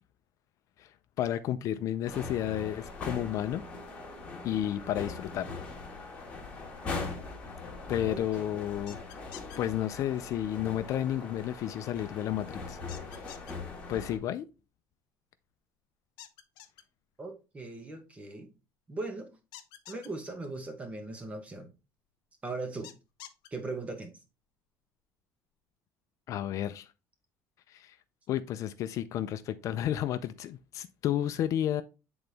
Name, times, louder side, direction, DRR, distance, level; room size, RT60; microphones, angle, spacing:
voice 1, 1.2-3.6 4.4-5.5 7.9-9.0 9.6-12.8 13.9-14.4 26.3-26.9 27.7-28.0 28.3-31.8, left 11 dB, 50° left, 0.4 m, -32 dB
sound 1, 2.0-14.2, left 3 dB, 15° left, 1.6 m, -41 dB
voice 2, 8.1-8.6 17.2-18.5 18.9-19.3 19.9-21.7 22.4-22.9 23.5-24.1, right 3 dB, 20° right, 1.1 m, -39 dB
sound 2, 8.9-9.6 12.9-13.5 16.2-16.8 19.5-20.1 22.8-23.5, left 13 dB, 75° left, 0.7 m, -47 dB
7.9 x 3.9 x 3.4 m
cardioid pair, 155°, 7 cm